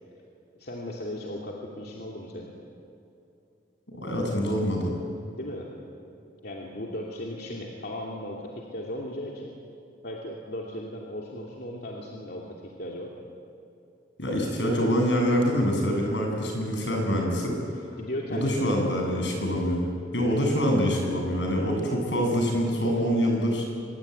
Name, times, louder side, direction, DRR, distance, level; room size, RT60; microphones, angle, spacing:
voice 1, 0.6-2.5 5.3-5.7 6.4-9.5 10.0-13.1 18.0-19.0, left 1 dB, 60° left, -2 dB, 2.8 m, -36 dB
voice 2, 3.9-4.9 14.2-17.8 18.3-19.9 20.1-23.6, equal, 85° left, 1 dB, 7.7 m, -25 dB
25.5 x 21.0 x 9.4 m, 2.8 s
head